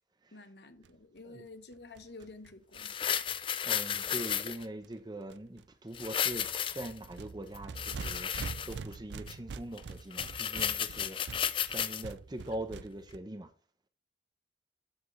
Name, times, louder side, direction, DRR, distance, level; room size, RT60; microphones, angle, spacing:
voice 1, 0.3-3.0, left 2 dB, 65° left, 1.0 m, -50 dB
sound 1, 0.8-0.9 1.2-1.3 1.5-1.6 1.7-4.9 5.3-5.7 5.9-13.2, right 4 dB, 85° right, 0.4 m, -45 dB
sound 2, 2.7-4.6 5.9-7.0 7.5-8.9 9.3-9.4 9.8-9.9 10.1-12.0 12.5-12.6, left 9 dB, 30° left, 0.3 m, -33 dB
voice 2, 3.6-8.3 8.7-13.5, right 1 dB, 25° right, 0.8 m, -42 dB
12.0 x 5.0 x 3.2 m
head